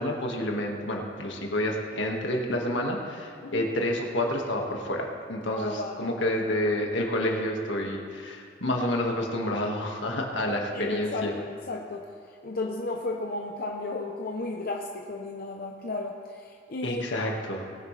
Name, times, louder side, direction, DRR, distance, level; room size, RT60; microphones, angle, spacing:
voice 1, 0.0-11.3 16.8-17.6, left 1 dB, 80° left, 1 dB, 1.8 m, -29 dB
voice 2, 3.4-3.7 5.5-6.1 10.1-17.0, left 2 dB, 50° left, 1 dB, 0.8 m, -34 dB
20.0 x 9.7 x 3.3 m, 2.2 s
head